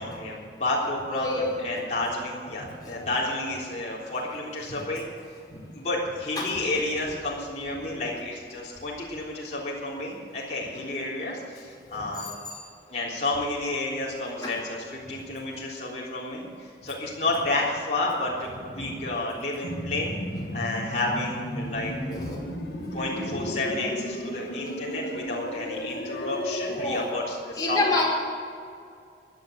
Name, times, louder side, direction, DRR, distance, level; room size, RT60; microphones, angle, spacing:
voice 1, 0.0-5.0 5.5-12.3 12.9-22.2 22.9-27.8, left 2 dB, 40° left, -6 dB, 3.6 m, -31 dB
voice 2, 1.1-1.6 2.8-3.1 6.4-6.5 12.1-12.6 14.4-14.5 22.1-22.4 26.8-27.0 27.6-28.0, left 2 dB, 20° left, -3 dB, 4.9 m, -28 dB
sound 1, 19.6-27.0, equal, 65° left, 2.1 m, -34 dB
16.0 x 11.0 x 8.0 m, 2.3 s
head